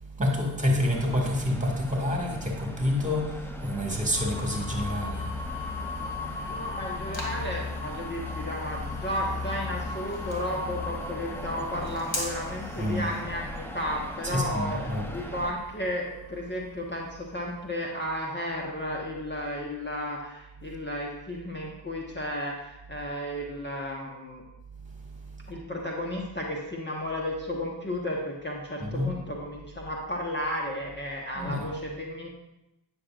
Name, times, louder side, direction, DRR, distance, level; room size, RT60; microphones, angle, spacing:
voice 1, 0.0-6.6 12.8-13.1 14.2-15.1 24.7-25.5 28.8-29.1 31.4-31.6, left 1 dB, 15° right, 0 dB, 2.1 m, -29 dB
sound 1, 0.8-15.5, equal, 5° left, 0.7 m, -41 dB
sound 2, 4.1-17.9, left 4 dB, 60° left, 1.2 m, -38 dB
sound 3, 6.2-13.2, left 1 dB, 40° left, 2.4 m, -42 dB
voice 2, 6.5-24.4 25.5-32.3, equal, 20° left, -2 dB, 1.2 m, -33 dB
9.4 x 6.3 x 2.5 m, 0.91 s
supercardioid pair, 55°, 48 cm